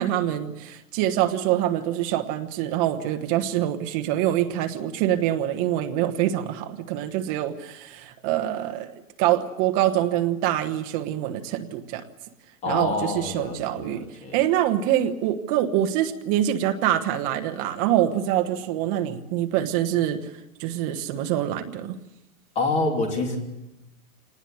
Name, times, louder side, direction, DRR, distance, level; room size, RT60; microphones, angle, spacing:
voice 1, 0.0-12.0 12.7-22.0, right 12 dB, 25° right, 7 dB, 1.1 m, -25 dB
voice 2, 12.6-14.4 22.5-23.4, left 2 dB, 15° left, 4 dB, 2.9 m, -27 dB
25.5 x 19.5 x 7.9 m, 0.94 s
supercardioid pair, 170°, 43 cm